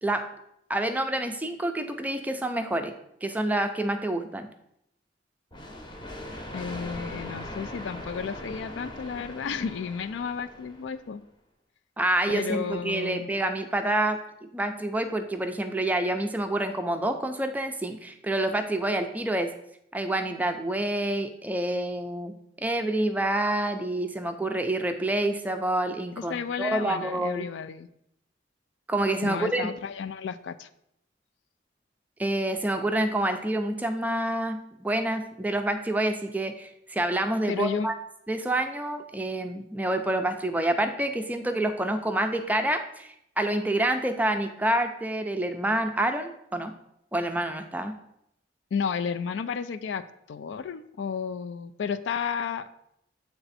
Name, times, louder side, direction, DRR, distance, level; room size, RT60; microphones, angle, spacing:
voice 1, 0.7-2.9 3.2-4.5 12.0-14.2 14.5-19.5 19.9-22.3 22.6-27.5 28.9-29.7 32.2-38.0 38.3-46.7 47.1-47.9, right 1 dB, 10° right, 7 dB, 0.4 m, -27 dB
sound 1, 5.5-11.1, left 1 dB, 25° left, 0.8 m, -40 dB
voice 2, 6.5-11.2 12.3-13.3 26.3-27.9 29.2-30.7 37.5-37.9 48.7-52.7, left 6 dB, 80° left, 12 dB, 0.4 m, -32 dB
8.0 x 3.4 x 4.1 m, 0.77 s
head